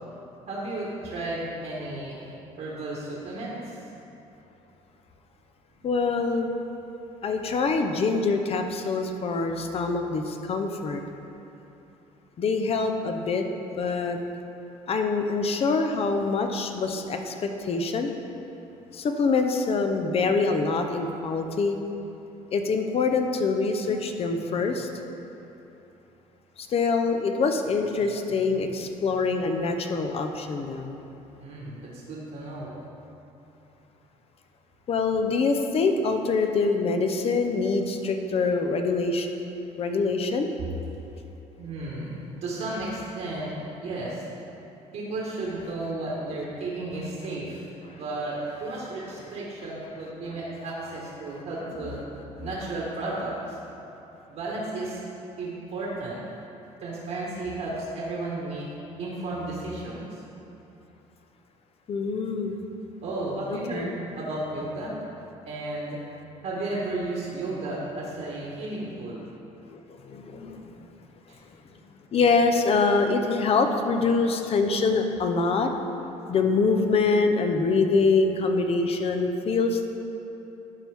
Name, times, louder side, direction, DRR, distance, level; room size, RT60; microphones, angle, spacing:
voice 1, 0.5-2.2 2.6-3.8 31.4-32.8 41.6-43.5 43.8-44.3 44.9-47.6 47.9-52.0 52.4-53.6 54.3-55.0 55.4-56.2 56.8-58.6 59.0-60.2 63.0-65.0 65.4-66.0 66.4-69.3 70.3-70.5 71.3-71.4, right 2 dB, 65° right, -6 dB, 1.6 m, -33 dB
voice 2, 5.8-6.5 7.2-11.0 12.4-13.4 13.8-14.2 14.9-18.1 18.9-21.8 22.5-24.9 26.6-31.0 34.9-39.3 39.8-40.5 61.9-62.5 63.5-63.9 69.7-70.7 72.1-75.7 76.3-79.9, left 4 dB, 45° left, 5 dB, 0.7 m, -25 dB
11.5 x 4.5 x 3.5 m, 3.0 s
cardioid pair, 100°, 14 cm